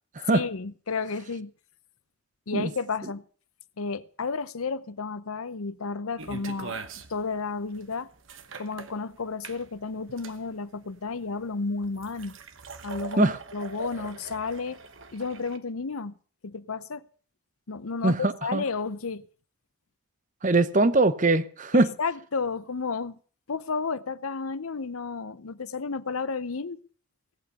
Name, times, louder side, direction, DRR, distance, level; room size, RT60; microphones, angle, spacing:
voice 1, 0.3-1.5 2.5-3.2 3.8-6.8 7.1-8.1 8.6-12.4 12.8-14.8 15.1-16.1 16.4-17.0 17.7-19.3 20.8-20.9 21.7-23.2 23.5-26.8, left 4 dB, 75° left, 0.7 m, -32 dB
sound 1, 6.2-15.6, right 4 dB, 60° right, 1.2 m, -42 dB
voice 2, 18.0-18.6 20.4-21.9, right 2 dB, 35° right, 0.8 m, -22 dB
17.5 x 8.8 x 6.9 m
head